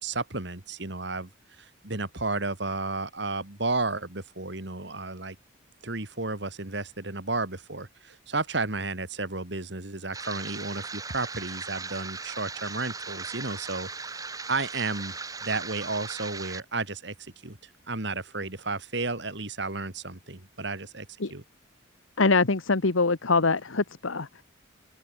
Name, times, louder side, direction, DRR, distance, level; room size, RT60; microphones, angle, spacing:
voice 1, 0.0-1.3 1.6-5.4 5.8-14.2 14.5-17.6 17.9-21.4, right 3 dB, 55° right, 2.6 m, -32 dB
sound 1, 10.1-16.6, right 4 dB, 15° right, 1.2 m, -38 dB
voice 2, 22.2-24.4, left 3 dB, 80° left, 1.2 m, -24 dB
open air
head